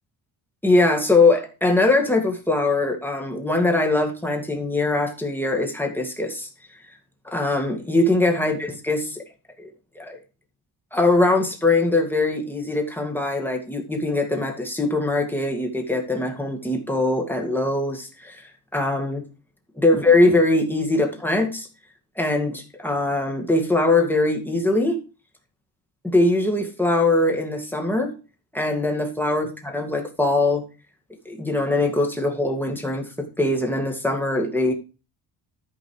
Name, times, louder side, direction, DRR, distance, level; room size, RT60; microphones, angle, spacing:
voice 1, 0.6-6.5 7.2-9.2 9.6-9.7 10.0-10.2 10.9-19.2 19.8-21.7 22.2-25.0 26.0-28.1 28.5-30.6 31.3-34.7, left 2 dB, 5° left, 2 dB, 2.1 m, -22 dB
13.0 x 5.5 x 4.9 m, 0.33 s
cardioid pair, 135°, 44 cm